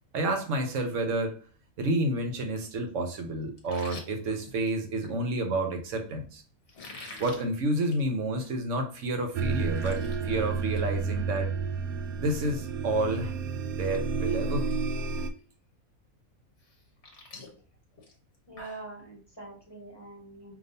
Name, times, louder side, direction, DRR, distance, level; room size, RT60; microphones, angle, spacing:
voice 1, 0.1-1.4 1.8-6.4 7.2-11.5 12.2-13.3 13.7-14.8, right 1 dB, 65° right, 1.1 m, -30 dB
sound 1, 3.6-5.2 6.7-7.4 7.8-8.1 8.4-8.5 9.0-9.1 9.4-10.2 10.5-10.9 11.2-11.3 13.1-13.2 13.7-14.0 14.3-14.7 15.2-15.3 16.6-18.9, left 2 dB, 55° left, 1.3 m, -46 dB
sound 2, 9.3-15.3, right 4 dB, 90° right, 1.0 m, -31 dB
voice 2, 18.5-20.6, right 2 dB, 20° left, 1.4 m, -44 dB
5.1 x 2.8 x 2.7 m
omnidirectional pair, 1.5 m